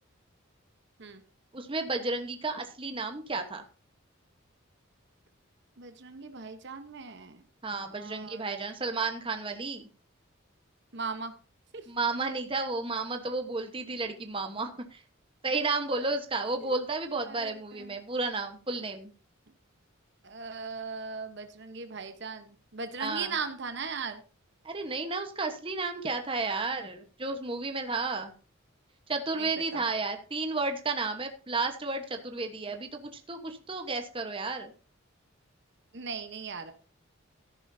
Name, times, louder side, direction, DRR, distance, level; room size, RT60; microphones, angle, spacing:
voice 1, 1.5-3.6 7.6-9.8 11.9-15.0 15.4-19.1 23.0-23.3 24.6-28.3 29.1-34.7, right 3 dB, 25° right, 5 dB, 1.2 m, -32 dB
voice 2, 5.8-7.4 7.9-8.5 10.9-11.3 11.7-11.8 16.6-16.7 17.1-17.9 20.2-24.2 29.4-29.8 35.9-36.7, right 5 dB, 55° right, 8 dB, 1.1 m, -38 dB
14.0 x 11.0 x 2.7 m, 0.36 s
head